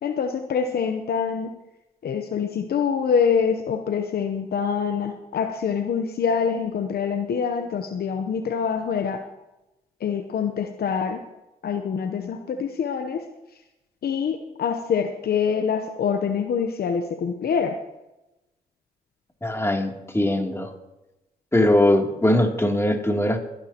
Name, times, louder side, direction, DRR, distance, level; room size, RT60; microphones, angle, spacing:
voice 1, 0.0-1.5 2.0-9.2 10.0-11.2 11.6-13.2 14.0-17.8, left 6 dB, 70° left, 7 dB, 0.9 m, -25 dB
voice 2, 19.4-20.7 21.5-23.4, left 1 dB, 15° left, 1 dB, 3.0 m, -21 dB
24.0 x 10.5 x 3.0 m, 0.95 s
supercardioid pair, 45°, 17 cm